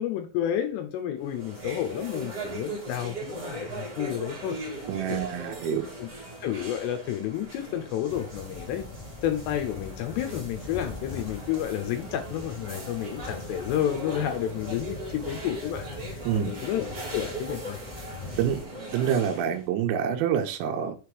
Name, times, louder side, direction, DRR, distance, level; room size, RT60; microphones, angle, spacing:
voice 1, 0.0-4.6 5.1-5.2 5.7-6.1 6.4-8.8 9.2-17.8, left 11 dB, 80° left, 2.7 m, -31 dB
sound 1, 1.2-19.7, right 2 dB, 50° right, 1.1 m, -39 dB
voice 2, 4.9-5.8 16.3-16.5 18.4-18.6 18.9-21.0, right 9 dB, 80° right, 3.0 m, -27 dB
sound 2, 8.1-18.7, left 3 dB, 55° left, 0.6 m, -42 dB
6.8 x 3.6 x 4.6 m
omnidirectional pair, 5.3 m